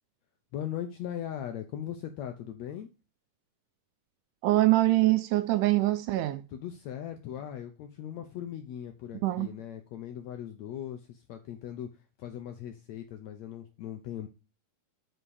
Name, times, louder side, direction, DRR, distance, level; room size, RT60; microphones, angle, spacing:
voice 1, 0.5-2.9 6.5-11.9 12.2-14.3, left 10 dB, 75° left, 1.6 m, -39 dB
voice 2, 4.4-6.4 9.2-9.5, right 17 dB, 80° right, 1.9 m, -24 dB
7.7 x 5.6 x 4.8 m
omnidirectional pair, 4.0 m